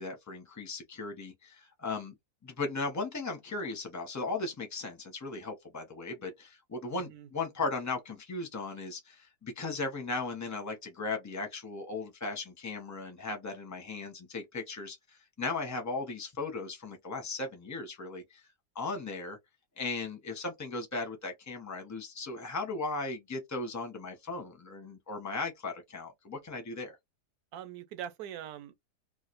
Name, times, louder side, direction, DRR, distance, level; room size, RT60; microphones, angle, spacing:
voice 1, 0.0-2.1 2.4-18.5 18.7-19.4 19.8-27.0, left 3 dB, 20° left, 0.5 m, -37 dB
voice 2, 6.9-7.3 27.5-28.8, right 10 dB, 70° right, 1.0 m, -42 dB
3.1 x 2.3 x 3.0 m
omnidirectional pair, 1.8 m